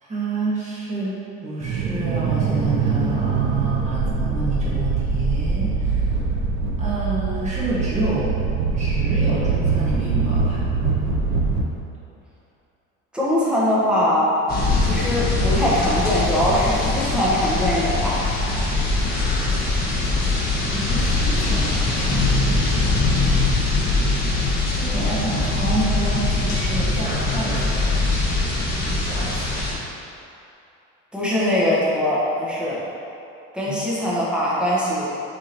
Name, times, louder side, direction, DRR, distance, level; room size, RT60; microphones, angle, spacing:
voice 1, 0.0-1.1 1.4-6.1 6.8-8.3 8.7-10.6 20.7-22.4 24.6-27.8 28.8-29.3 33.6-33.7, right 2 dB, 25° right, -8 dB, 1.5 m, -28 dB
sound 1, 1.6-11.6, right 4 dB, 65° right, 0.7 m, -23 dB
voice 2, 13.1-14.3 14.8-18.2 31.1-32.8 33.5-35.1, left 1 dB, 5° right, -8 dB, 1.1 m, -21 dB
sound 2, 14.5-29.7, left 2 dB, 30° left, 1.3 m, -22 dB
8.7 x 3.6 x 2.9 m, 2.8 s
cardioid pair, 160°, 30 cm